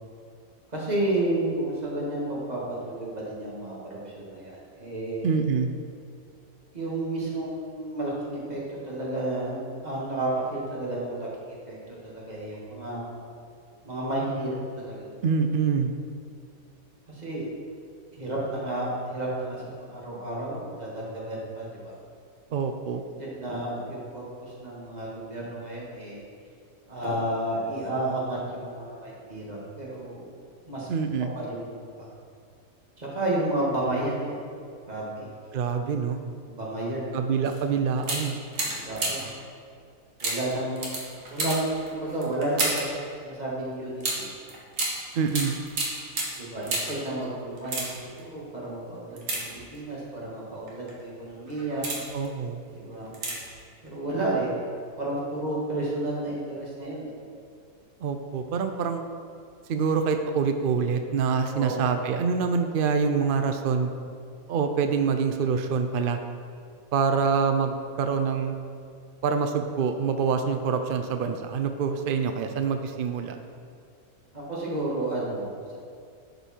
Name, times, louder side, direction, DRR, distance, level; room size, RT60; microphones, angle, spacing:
voice 1, 0.7-5.3 6.7-13.2 13.8-15.1 17.1-17.5 18.1-21.9 23.2-26.2 26.9-30.3 30.7-30.9 31.3-32.1 33.0-34.5 34.9-35.3 36.5-37.1 37.9-38.3 38.6-39.3 40.2-41.0 41.3-44.3 46.4-52.0 52.7-53.1 53.8-54.5 55.0-57.1 61.4-61.8 74.3-75.8, right 1 dB, 30° right, -5 dB, 2.0 m, -31 dB
voice 2, 5.2-5.7 15.2-15.9 22.5-23.0 30.9-31.3 35.5-36.2 37.1-38.4 45.2-45.5 52.1-52.6 58.0-59.0 59.7-63.9 64.5-66.2 66.9-68.5 69.2-73.4, right 6 dB, 85° right, 7 dB, 0.4 m, -25 dB
sound 1, 37.4-37.6 38.0-39.4 40.2-43.0 44.0-47.1 47.5-48.2 49.2-50.0 50.7-50.9 51.5-52.3 53.1-53.6 53.9-54.0, right 2 dB, 65° right, 1.8 m, -31 dB
11.0 x 5.4 x 4.4 m, 2.3 s
omnidirectional pair, 1.5 m